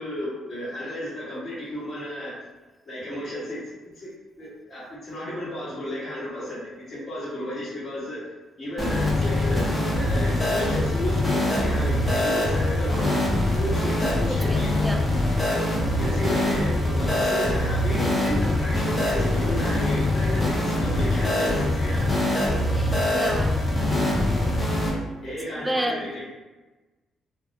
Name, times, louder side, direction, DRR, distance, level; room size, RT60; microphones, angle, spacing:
voice 1, 0.0-2.3 2.8-3.6 3.9-4.1 4.4-6.6 6.9-8.2 8.6-13.2 13.6-14.7 15.9-22.3 25.2-26.2, equal, 35° left, -12 dB, 1.1 m, -33 dB
sound 1, 8.8-24.9, left 1 dB, 15° left, 0.7 m, -23 dB
voice 2, 14.2-15.1 22.7-23.6 25.5-26.1, equal, 5° right, 4 dB, 0.3 m, -31 dB
2.2 x 2.0 x 2.8 m, 1.2 s
cardioid pair, 90°, 0 cm